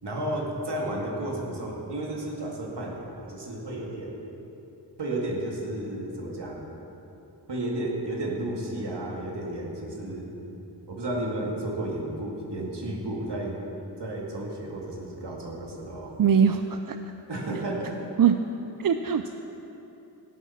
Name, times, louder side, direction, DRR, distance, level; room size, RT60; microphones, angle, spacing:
voice 1, 0.0-4.2 5.0-6.7 7.5-10.3 10.9-13.5 14.0-16.2 17.3-18.0, right 1 dB, 70° right, -2 dB, 2.4 m, -32 dB
voice 2, 16.2-17.0 18.2-18.4 18.8-19.3, right 7 dB, 55° right, 8 dB, 0.5 m, -21 dB
16.5 x 7.2 x 5.9 m, 3.0 s
cardioid pair, 40°, 42 cm